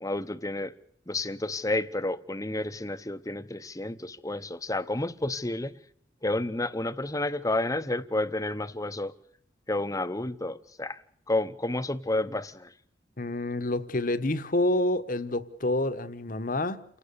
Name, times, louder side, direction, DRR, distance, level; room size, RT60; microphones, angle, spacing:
voice 1, 0.0-0.7 1.1-5.8 6.2-9.1 9.7-11.0 11.3-12.7, left 2 dB, 20° left, 0.9 m, -30 dB
voice 2, 13.2-16.8, left 1 dB, 45° left, 1.3 m, -28 dB
29.0 x 18.5 x 7.0 m
head